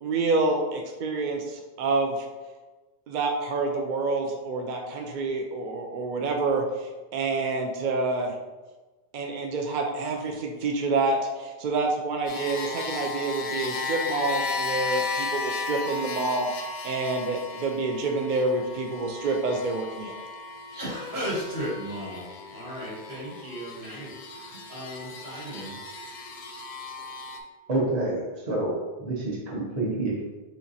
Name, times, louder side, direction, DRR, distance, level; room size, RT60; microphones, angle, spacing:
voice 1, 0.0-2.2 3.1-8.3 9.1-16.5 16.8-20.2, right 3 dB, 60° right, 2 dB, 0.6 m, -28 dB
sound 1, 12.3-27.4, left 3 dB, 55° left, 0.6 m, -35 dB
voice 2, 20.7-25.8, equal, 90° right, -7 dB, 1.9 m, -35 dB
voice 3, 27.7-28.7 29.0-30.2, right 2 dB, 40° right, -4 dB, 1.1 m, -28 dB
4.4 x 3.7 x 2.7 m, 1.2 s
omnidirectional pair, 1.1 m